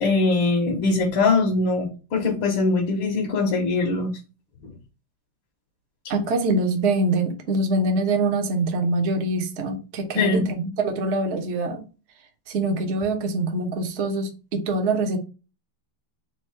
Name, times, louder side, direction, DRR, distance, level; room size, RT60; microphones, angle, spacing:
voice 1, 0.0-4.1 4.6-4.7 10.1-10.5, left 3 dB, 70° left, 1.7 m, -22 dB
voice 2, 6.1-11.8 12.5-15.2, right 2 dB, 50° right, 0.9 m, -24 dB
4.6 x 2.5 x 4.4 m
omnidirectional pair, 2.3 m